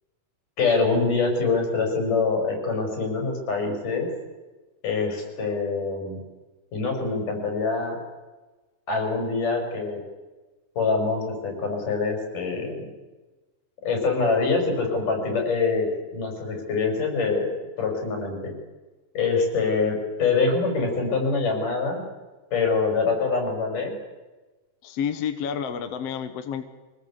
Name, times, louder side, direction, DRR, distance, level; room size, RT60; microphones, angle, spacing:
voice 1, 0.6-4.1 4.8-6.2 6.7-8.0 8.9-10.0 10.8-12.8 13.8-18.5 19.1-22.0 22.5-23.9, left 4 dB, 85° left, 3 dB, 6.7 m, -25 dB
voice 2, 24.8-26.6, left 7 dB, 55° left, 9 dB, 2.1 m, -29 dB
24.5 x 18.5 x 8.3 m, 1.2 s
omnidirectional pair, 3.6 m